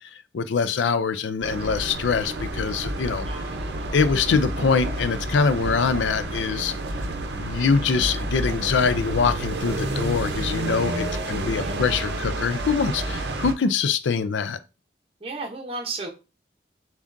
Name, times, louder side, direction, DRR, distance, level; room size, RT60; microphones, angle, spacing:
voice 1, 0.3-3.3 3.9-6.8 7.3-14.6, left 5 dB, 85° left, 0.4 m, -24 dB
sound 1, 1.4-13.5, right 1 dB, 70° right, 0.6 m, -30 dB
voice 2, 3.2-3.9 10.9-11.9 15.2-16.1, right 3 dB, 30° right, 0.9 m, -35 dB
7.0 x 2.4 x 2.6 m
head